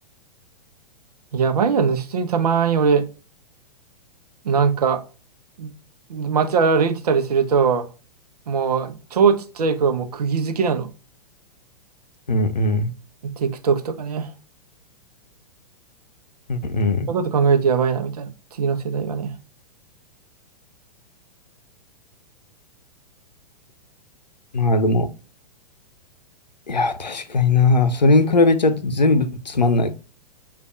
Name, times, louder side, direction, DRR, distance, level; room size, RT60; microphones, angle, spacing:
voice 1, 1.3-3.0 4.4-5.0 5.6-5.7 6.1-7.9 8.5-10.9 13.2-14.3 17.1-19.3, right 6 dB, 65° right, 0.8 m, -21 dB
voice 2, 12.3-12.9 16.5-17.1 24.5-25.1 26.7-29.9, left 3 dB, 85° left, 0.6 m, -19 dB
6.5 x 2.5 x 2.3 m
figure-of-eight pair, 105°, 21 cm